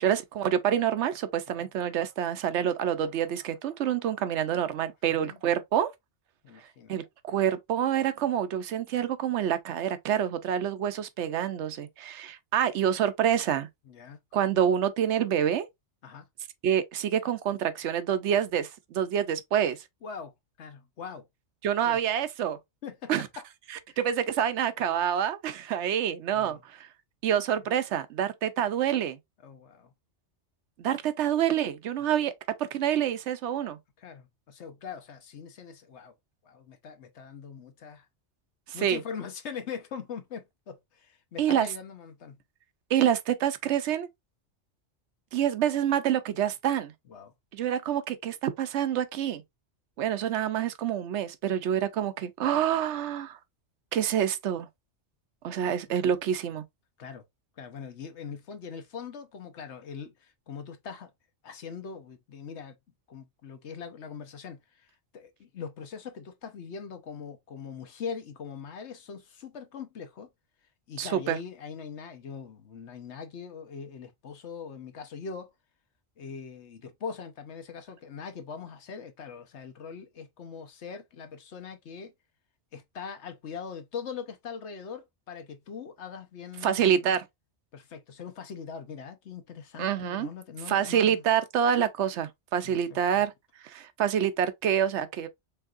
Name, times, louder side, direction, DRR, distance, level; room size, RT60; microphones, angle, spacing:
voice 1, 0.0-5.9 6.9-13.7 14.3-15.7 16.6-19.8 21.6-22.6 23.1-23.3 24.0-26.9 27.2-29.2 30.8-32.3 32.6-33.8 38.7-39.0 41.4-41.7 42.9-44.1 45.3-46.9 47.5-49.4 50.0-53.4 53.9-54.7 55.4-56.6 71.0-71.4 86.6-87.2 89.8-90.3 90.7-93.3 93.6-95.3, right 9 dB, 75° right, 0.9 m, -27 dB
voice 2, 5.1-5.4 6.4-6.9 13.9-14.2 16.0-16.3 20.0-21.3 21.9-22.0 22.8-23.4 23.9-24.0 26.3-26.6 29.4-29.9 34.0-36.1 36.4-38.1 38.7-42.4 47.1-47.3 55.6-55.7 57.0-57.2 57.6-61.1 61.4-62.8 63.1-70.3 70.9-75.5 76.2-82.1 82.7-87.2 87.7-91.2 92.6-93.3, left 6 dB, 70° left, 1.2 m, -41 dB
4.5 x 3.5 x 2.4 m
omnidirectional pair, 1.2 m